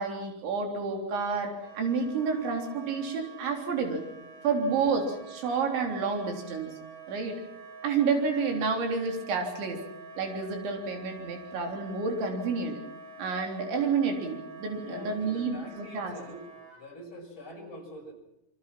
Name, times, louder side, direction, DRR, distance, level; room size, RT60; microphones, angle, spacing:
voice 1, 0.0-4.0 4.4-6.7 7.1-7.4 7.8-9.8 10.2-12.8 13.2-15.6 15.9-16.1, right 5 dB, 90° right, 3 dB, 6.0 m, -29 dB
Wind instrument woodwind instrument, 1.5-16.8, right 3 dB, 25° right, 6.9 m, -47 dB
voice 2, 4.6-5.0 14.8-18.1, equal, 25° left, 1 dB, 6.5 m, -45 dB
27.0 x 23.5 x 5.9 m, 0.87 s
omnidirectional pair, 5.1 m